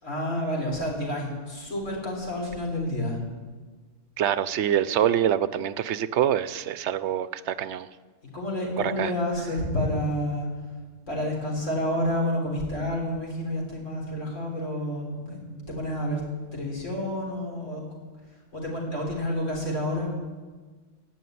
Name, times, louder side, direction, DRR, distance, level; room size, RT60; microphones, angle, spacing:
voice 1, 0.0-3.2 8.3-10.5 11.1-16.2 16.5-17.8 18.5-20.1, left 1 dB, 75° left, -2 dB, 4.2 m, -29 dB
voice 2, 4.2-7.9 8.8-9.1, right 10 dB, 70° right, 15 dB, 0.9 m, -25 dB
18.0 x 6.4 x 9.3 m, 1.4 s
omnidirectional pair, 1.3 m